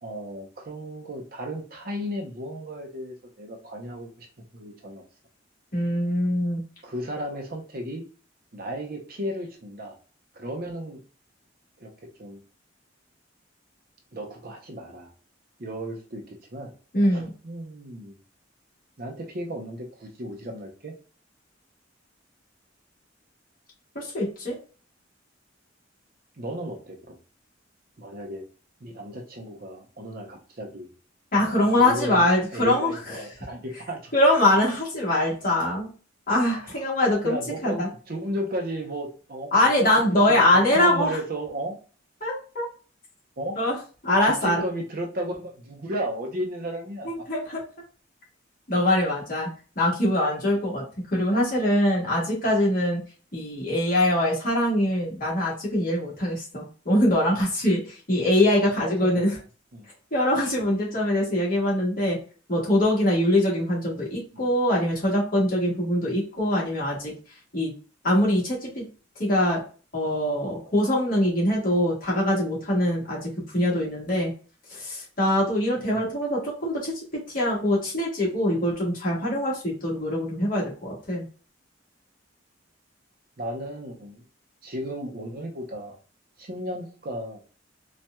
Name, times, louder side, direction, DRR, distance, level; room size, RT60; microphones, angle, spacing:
voice 1, 0.0-4.3 4.5-5.0 6.8-8.0 8.5-10.0 10.3-11.0 11.8-11.9 12.2-12.4 14.1-15.1 15.6-16.7 17.1-18.2 19.0-20.9 26.4-27.2 28.0-28.4 28.8-30.9 31.4-32.3 32.5-34.1 36.7-36.8 37.2-39.5 40.3-41.8 43.4-43.6 44.2-47.3 58.8-59.2 59.7-59.9 64.3-64.5 75.9-76.1 83.4-84.2 84.6-86.0 86.4-87.4, equal, 50° right, 2 dB, 0.7 m, -34 dB
voice 2, 5.7-6.6 16.9-17.3 23.9-24.6 31.3-33.3 34.1-35.9 36.3-37.4 37.6-37.9 39.5-41.2 42.2-42.7 43.6-43.7 44.0-44.6 47.0-47.6 48.7-49.5 49.7-53.0 53.3-59.4 60.1-62.2 62.5-67.1 67.5-67.7 68.0-68.8 69.2-69.6 69.9-74.3 74.7-81.2, left 1 dB, 45° left, -4 dB, 1.5 m, -23 dB
4.2 x 2.4 x 2.2 m, 0.38 s
head